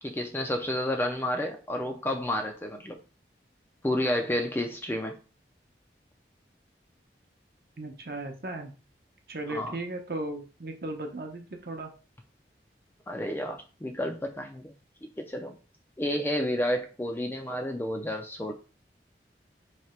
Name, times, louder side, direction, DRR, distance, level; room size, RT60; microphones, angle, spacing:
voice 1, 0.0-3.0 3.8-5.1 9.5-9.8 13.1-14.7 15.2-15.6 16.0-18.5, left 1 dB, 15° left, 0.4 m, -30 dB
voice 2, 7.8-8.8 9.3-11.9, right 2 dB, 55° right, 0.7 m, -36 dB
3.2 x 2.8 x 4.3 m
head